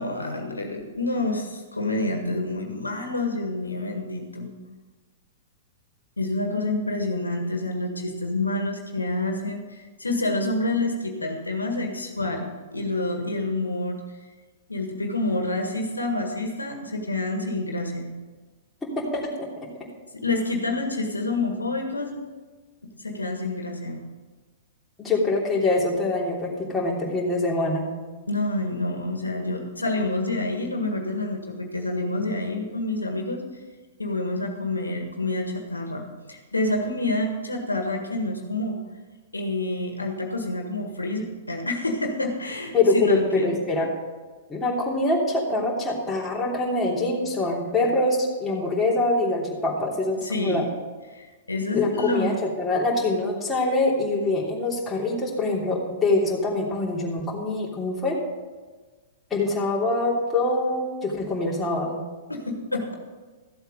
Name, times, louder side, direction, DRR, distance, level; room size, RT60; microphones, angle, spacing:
voice 1, 0.0-4.5 6.2-9.6 10.0-14.0 14.7-18.1 20.1-22.1 22.8-24.0 28.3-33.4 34.0-38.8 39.3-43.6 50.2-50.7 51.1-52.3 62.3-62.9, left 2 dB, 90° left, 3 dB, 1.6 m, -28 dB
voice 2, 19.0-19.3 25.0-27.9 42.7-43.9 44.5-50.6 51.7-58.2 59.3-62.0, left 2 dB, 10° left, -4 dB, 3.1 m, -24 dB
14.0 x 7.9 x 5.2 m, 1.3 s
figure-of-eight pair, 105°, 0 cm